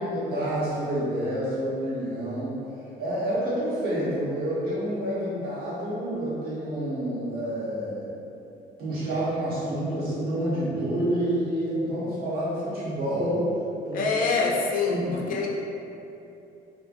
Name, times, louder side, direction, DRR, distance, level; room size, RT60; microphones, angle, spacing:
voice 1, 0.0-2.6 3.0-8.1 8.8-13.5 13.9-14.0 14.9-15.3, right 1 dB, 60° right, -9 dB, 1.2 m, -28 dB
voice 2, 13.9-15.5, left 4 dB, 55° left, -1 dB, 0.5 m, -25 dB
2.8 x 2.4 x 2.5 m, 2.7 s
cardioid pair, 110°, 17 cm